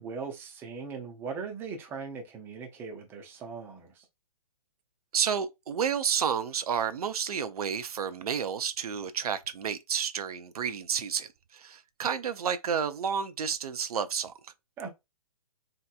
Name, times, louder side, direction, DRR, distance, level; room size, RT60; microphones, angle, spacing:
voice 1, 0.0-4.0 14.8-14.9, right 5 dB, 10° right, 0.5 m, -39 dB
voice 2, 5.1-14.5, right 7 dB, 80° right, 0.5 m, -31 dB
3.2 x 2.9 x 2.2 m
hypercardioid pair, 145°, 19 cm